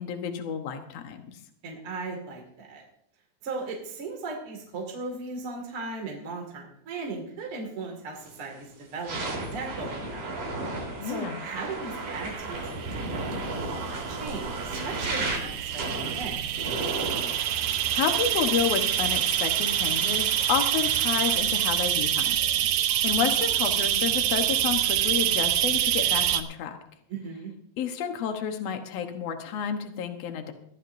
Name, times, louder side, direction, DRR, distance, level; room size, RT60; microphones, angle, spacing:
voice 1, 0.0-1.4 11.0-11.4 17.9-22.4 22.8-26.8 27.8-30.5, left 8 dB, 85° left, 6 dB, 1.4 m, -30 dB
voice 2, 1.6-2.8 3.4-10.3 11.0-13.3 13.7-16.3 27.1-27.5, right 3 dB, 40° right, 0 dB, 2.5 m, -37 dB
sound 1, 8.2-8.4 8.9-21.4, right 2 dB, 55° right, 5.1 m, -35 dB
sound 2, 12.0-26.4, right 11 dB, 80° right, 1.9 m, -26 dB
22.5 x 14.5 x 2.7 m, 0.68 s
omnidirectional pair, 4.8 m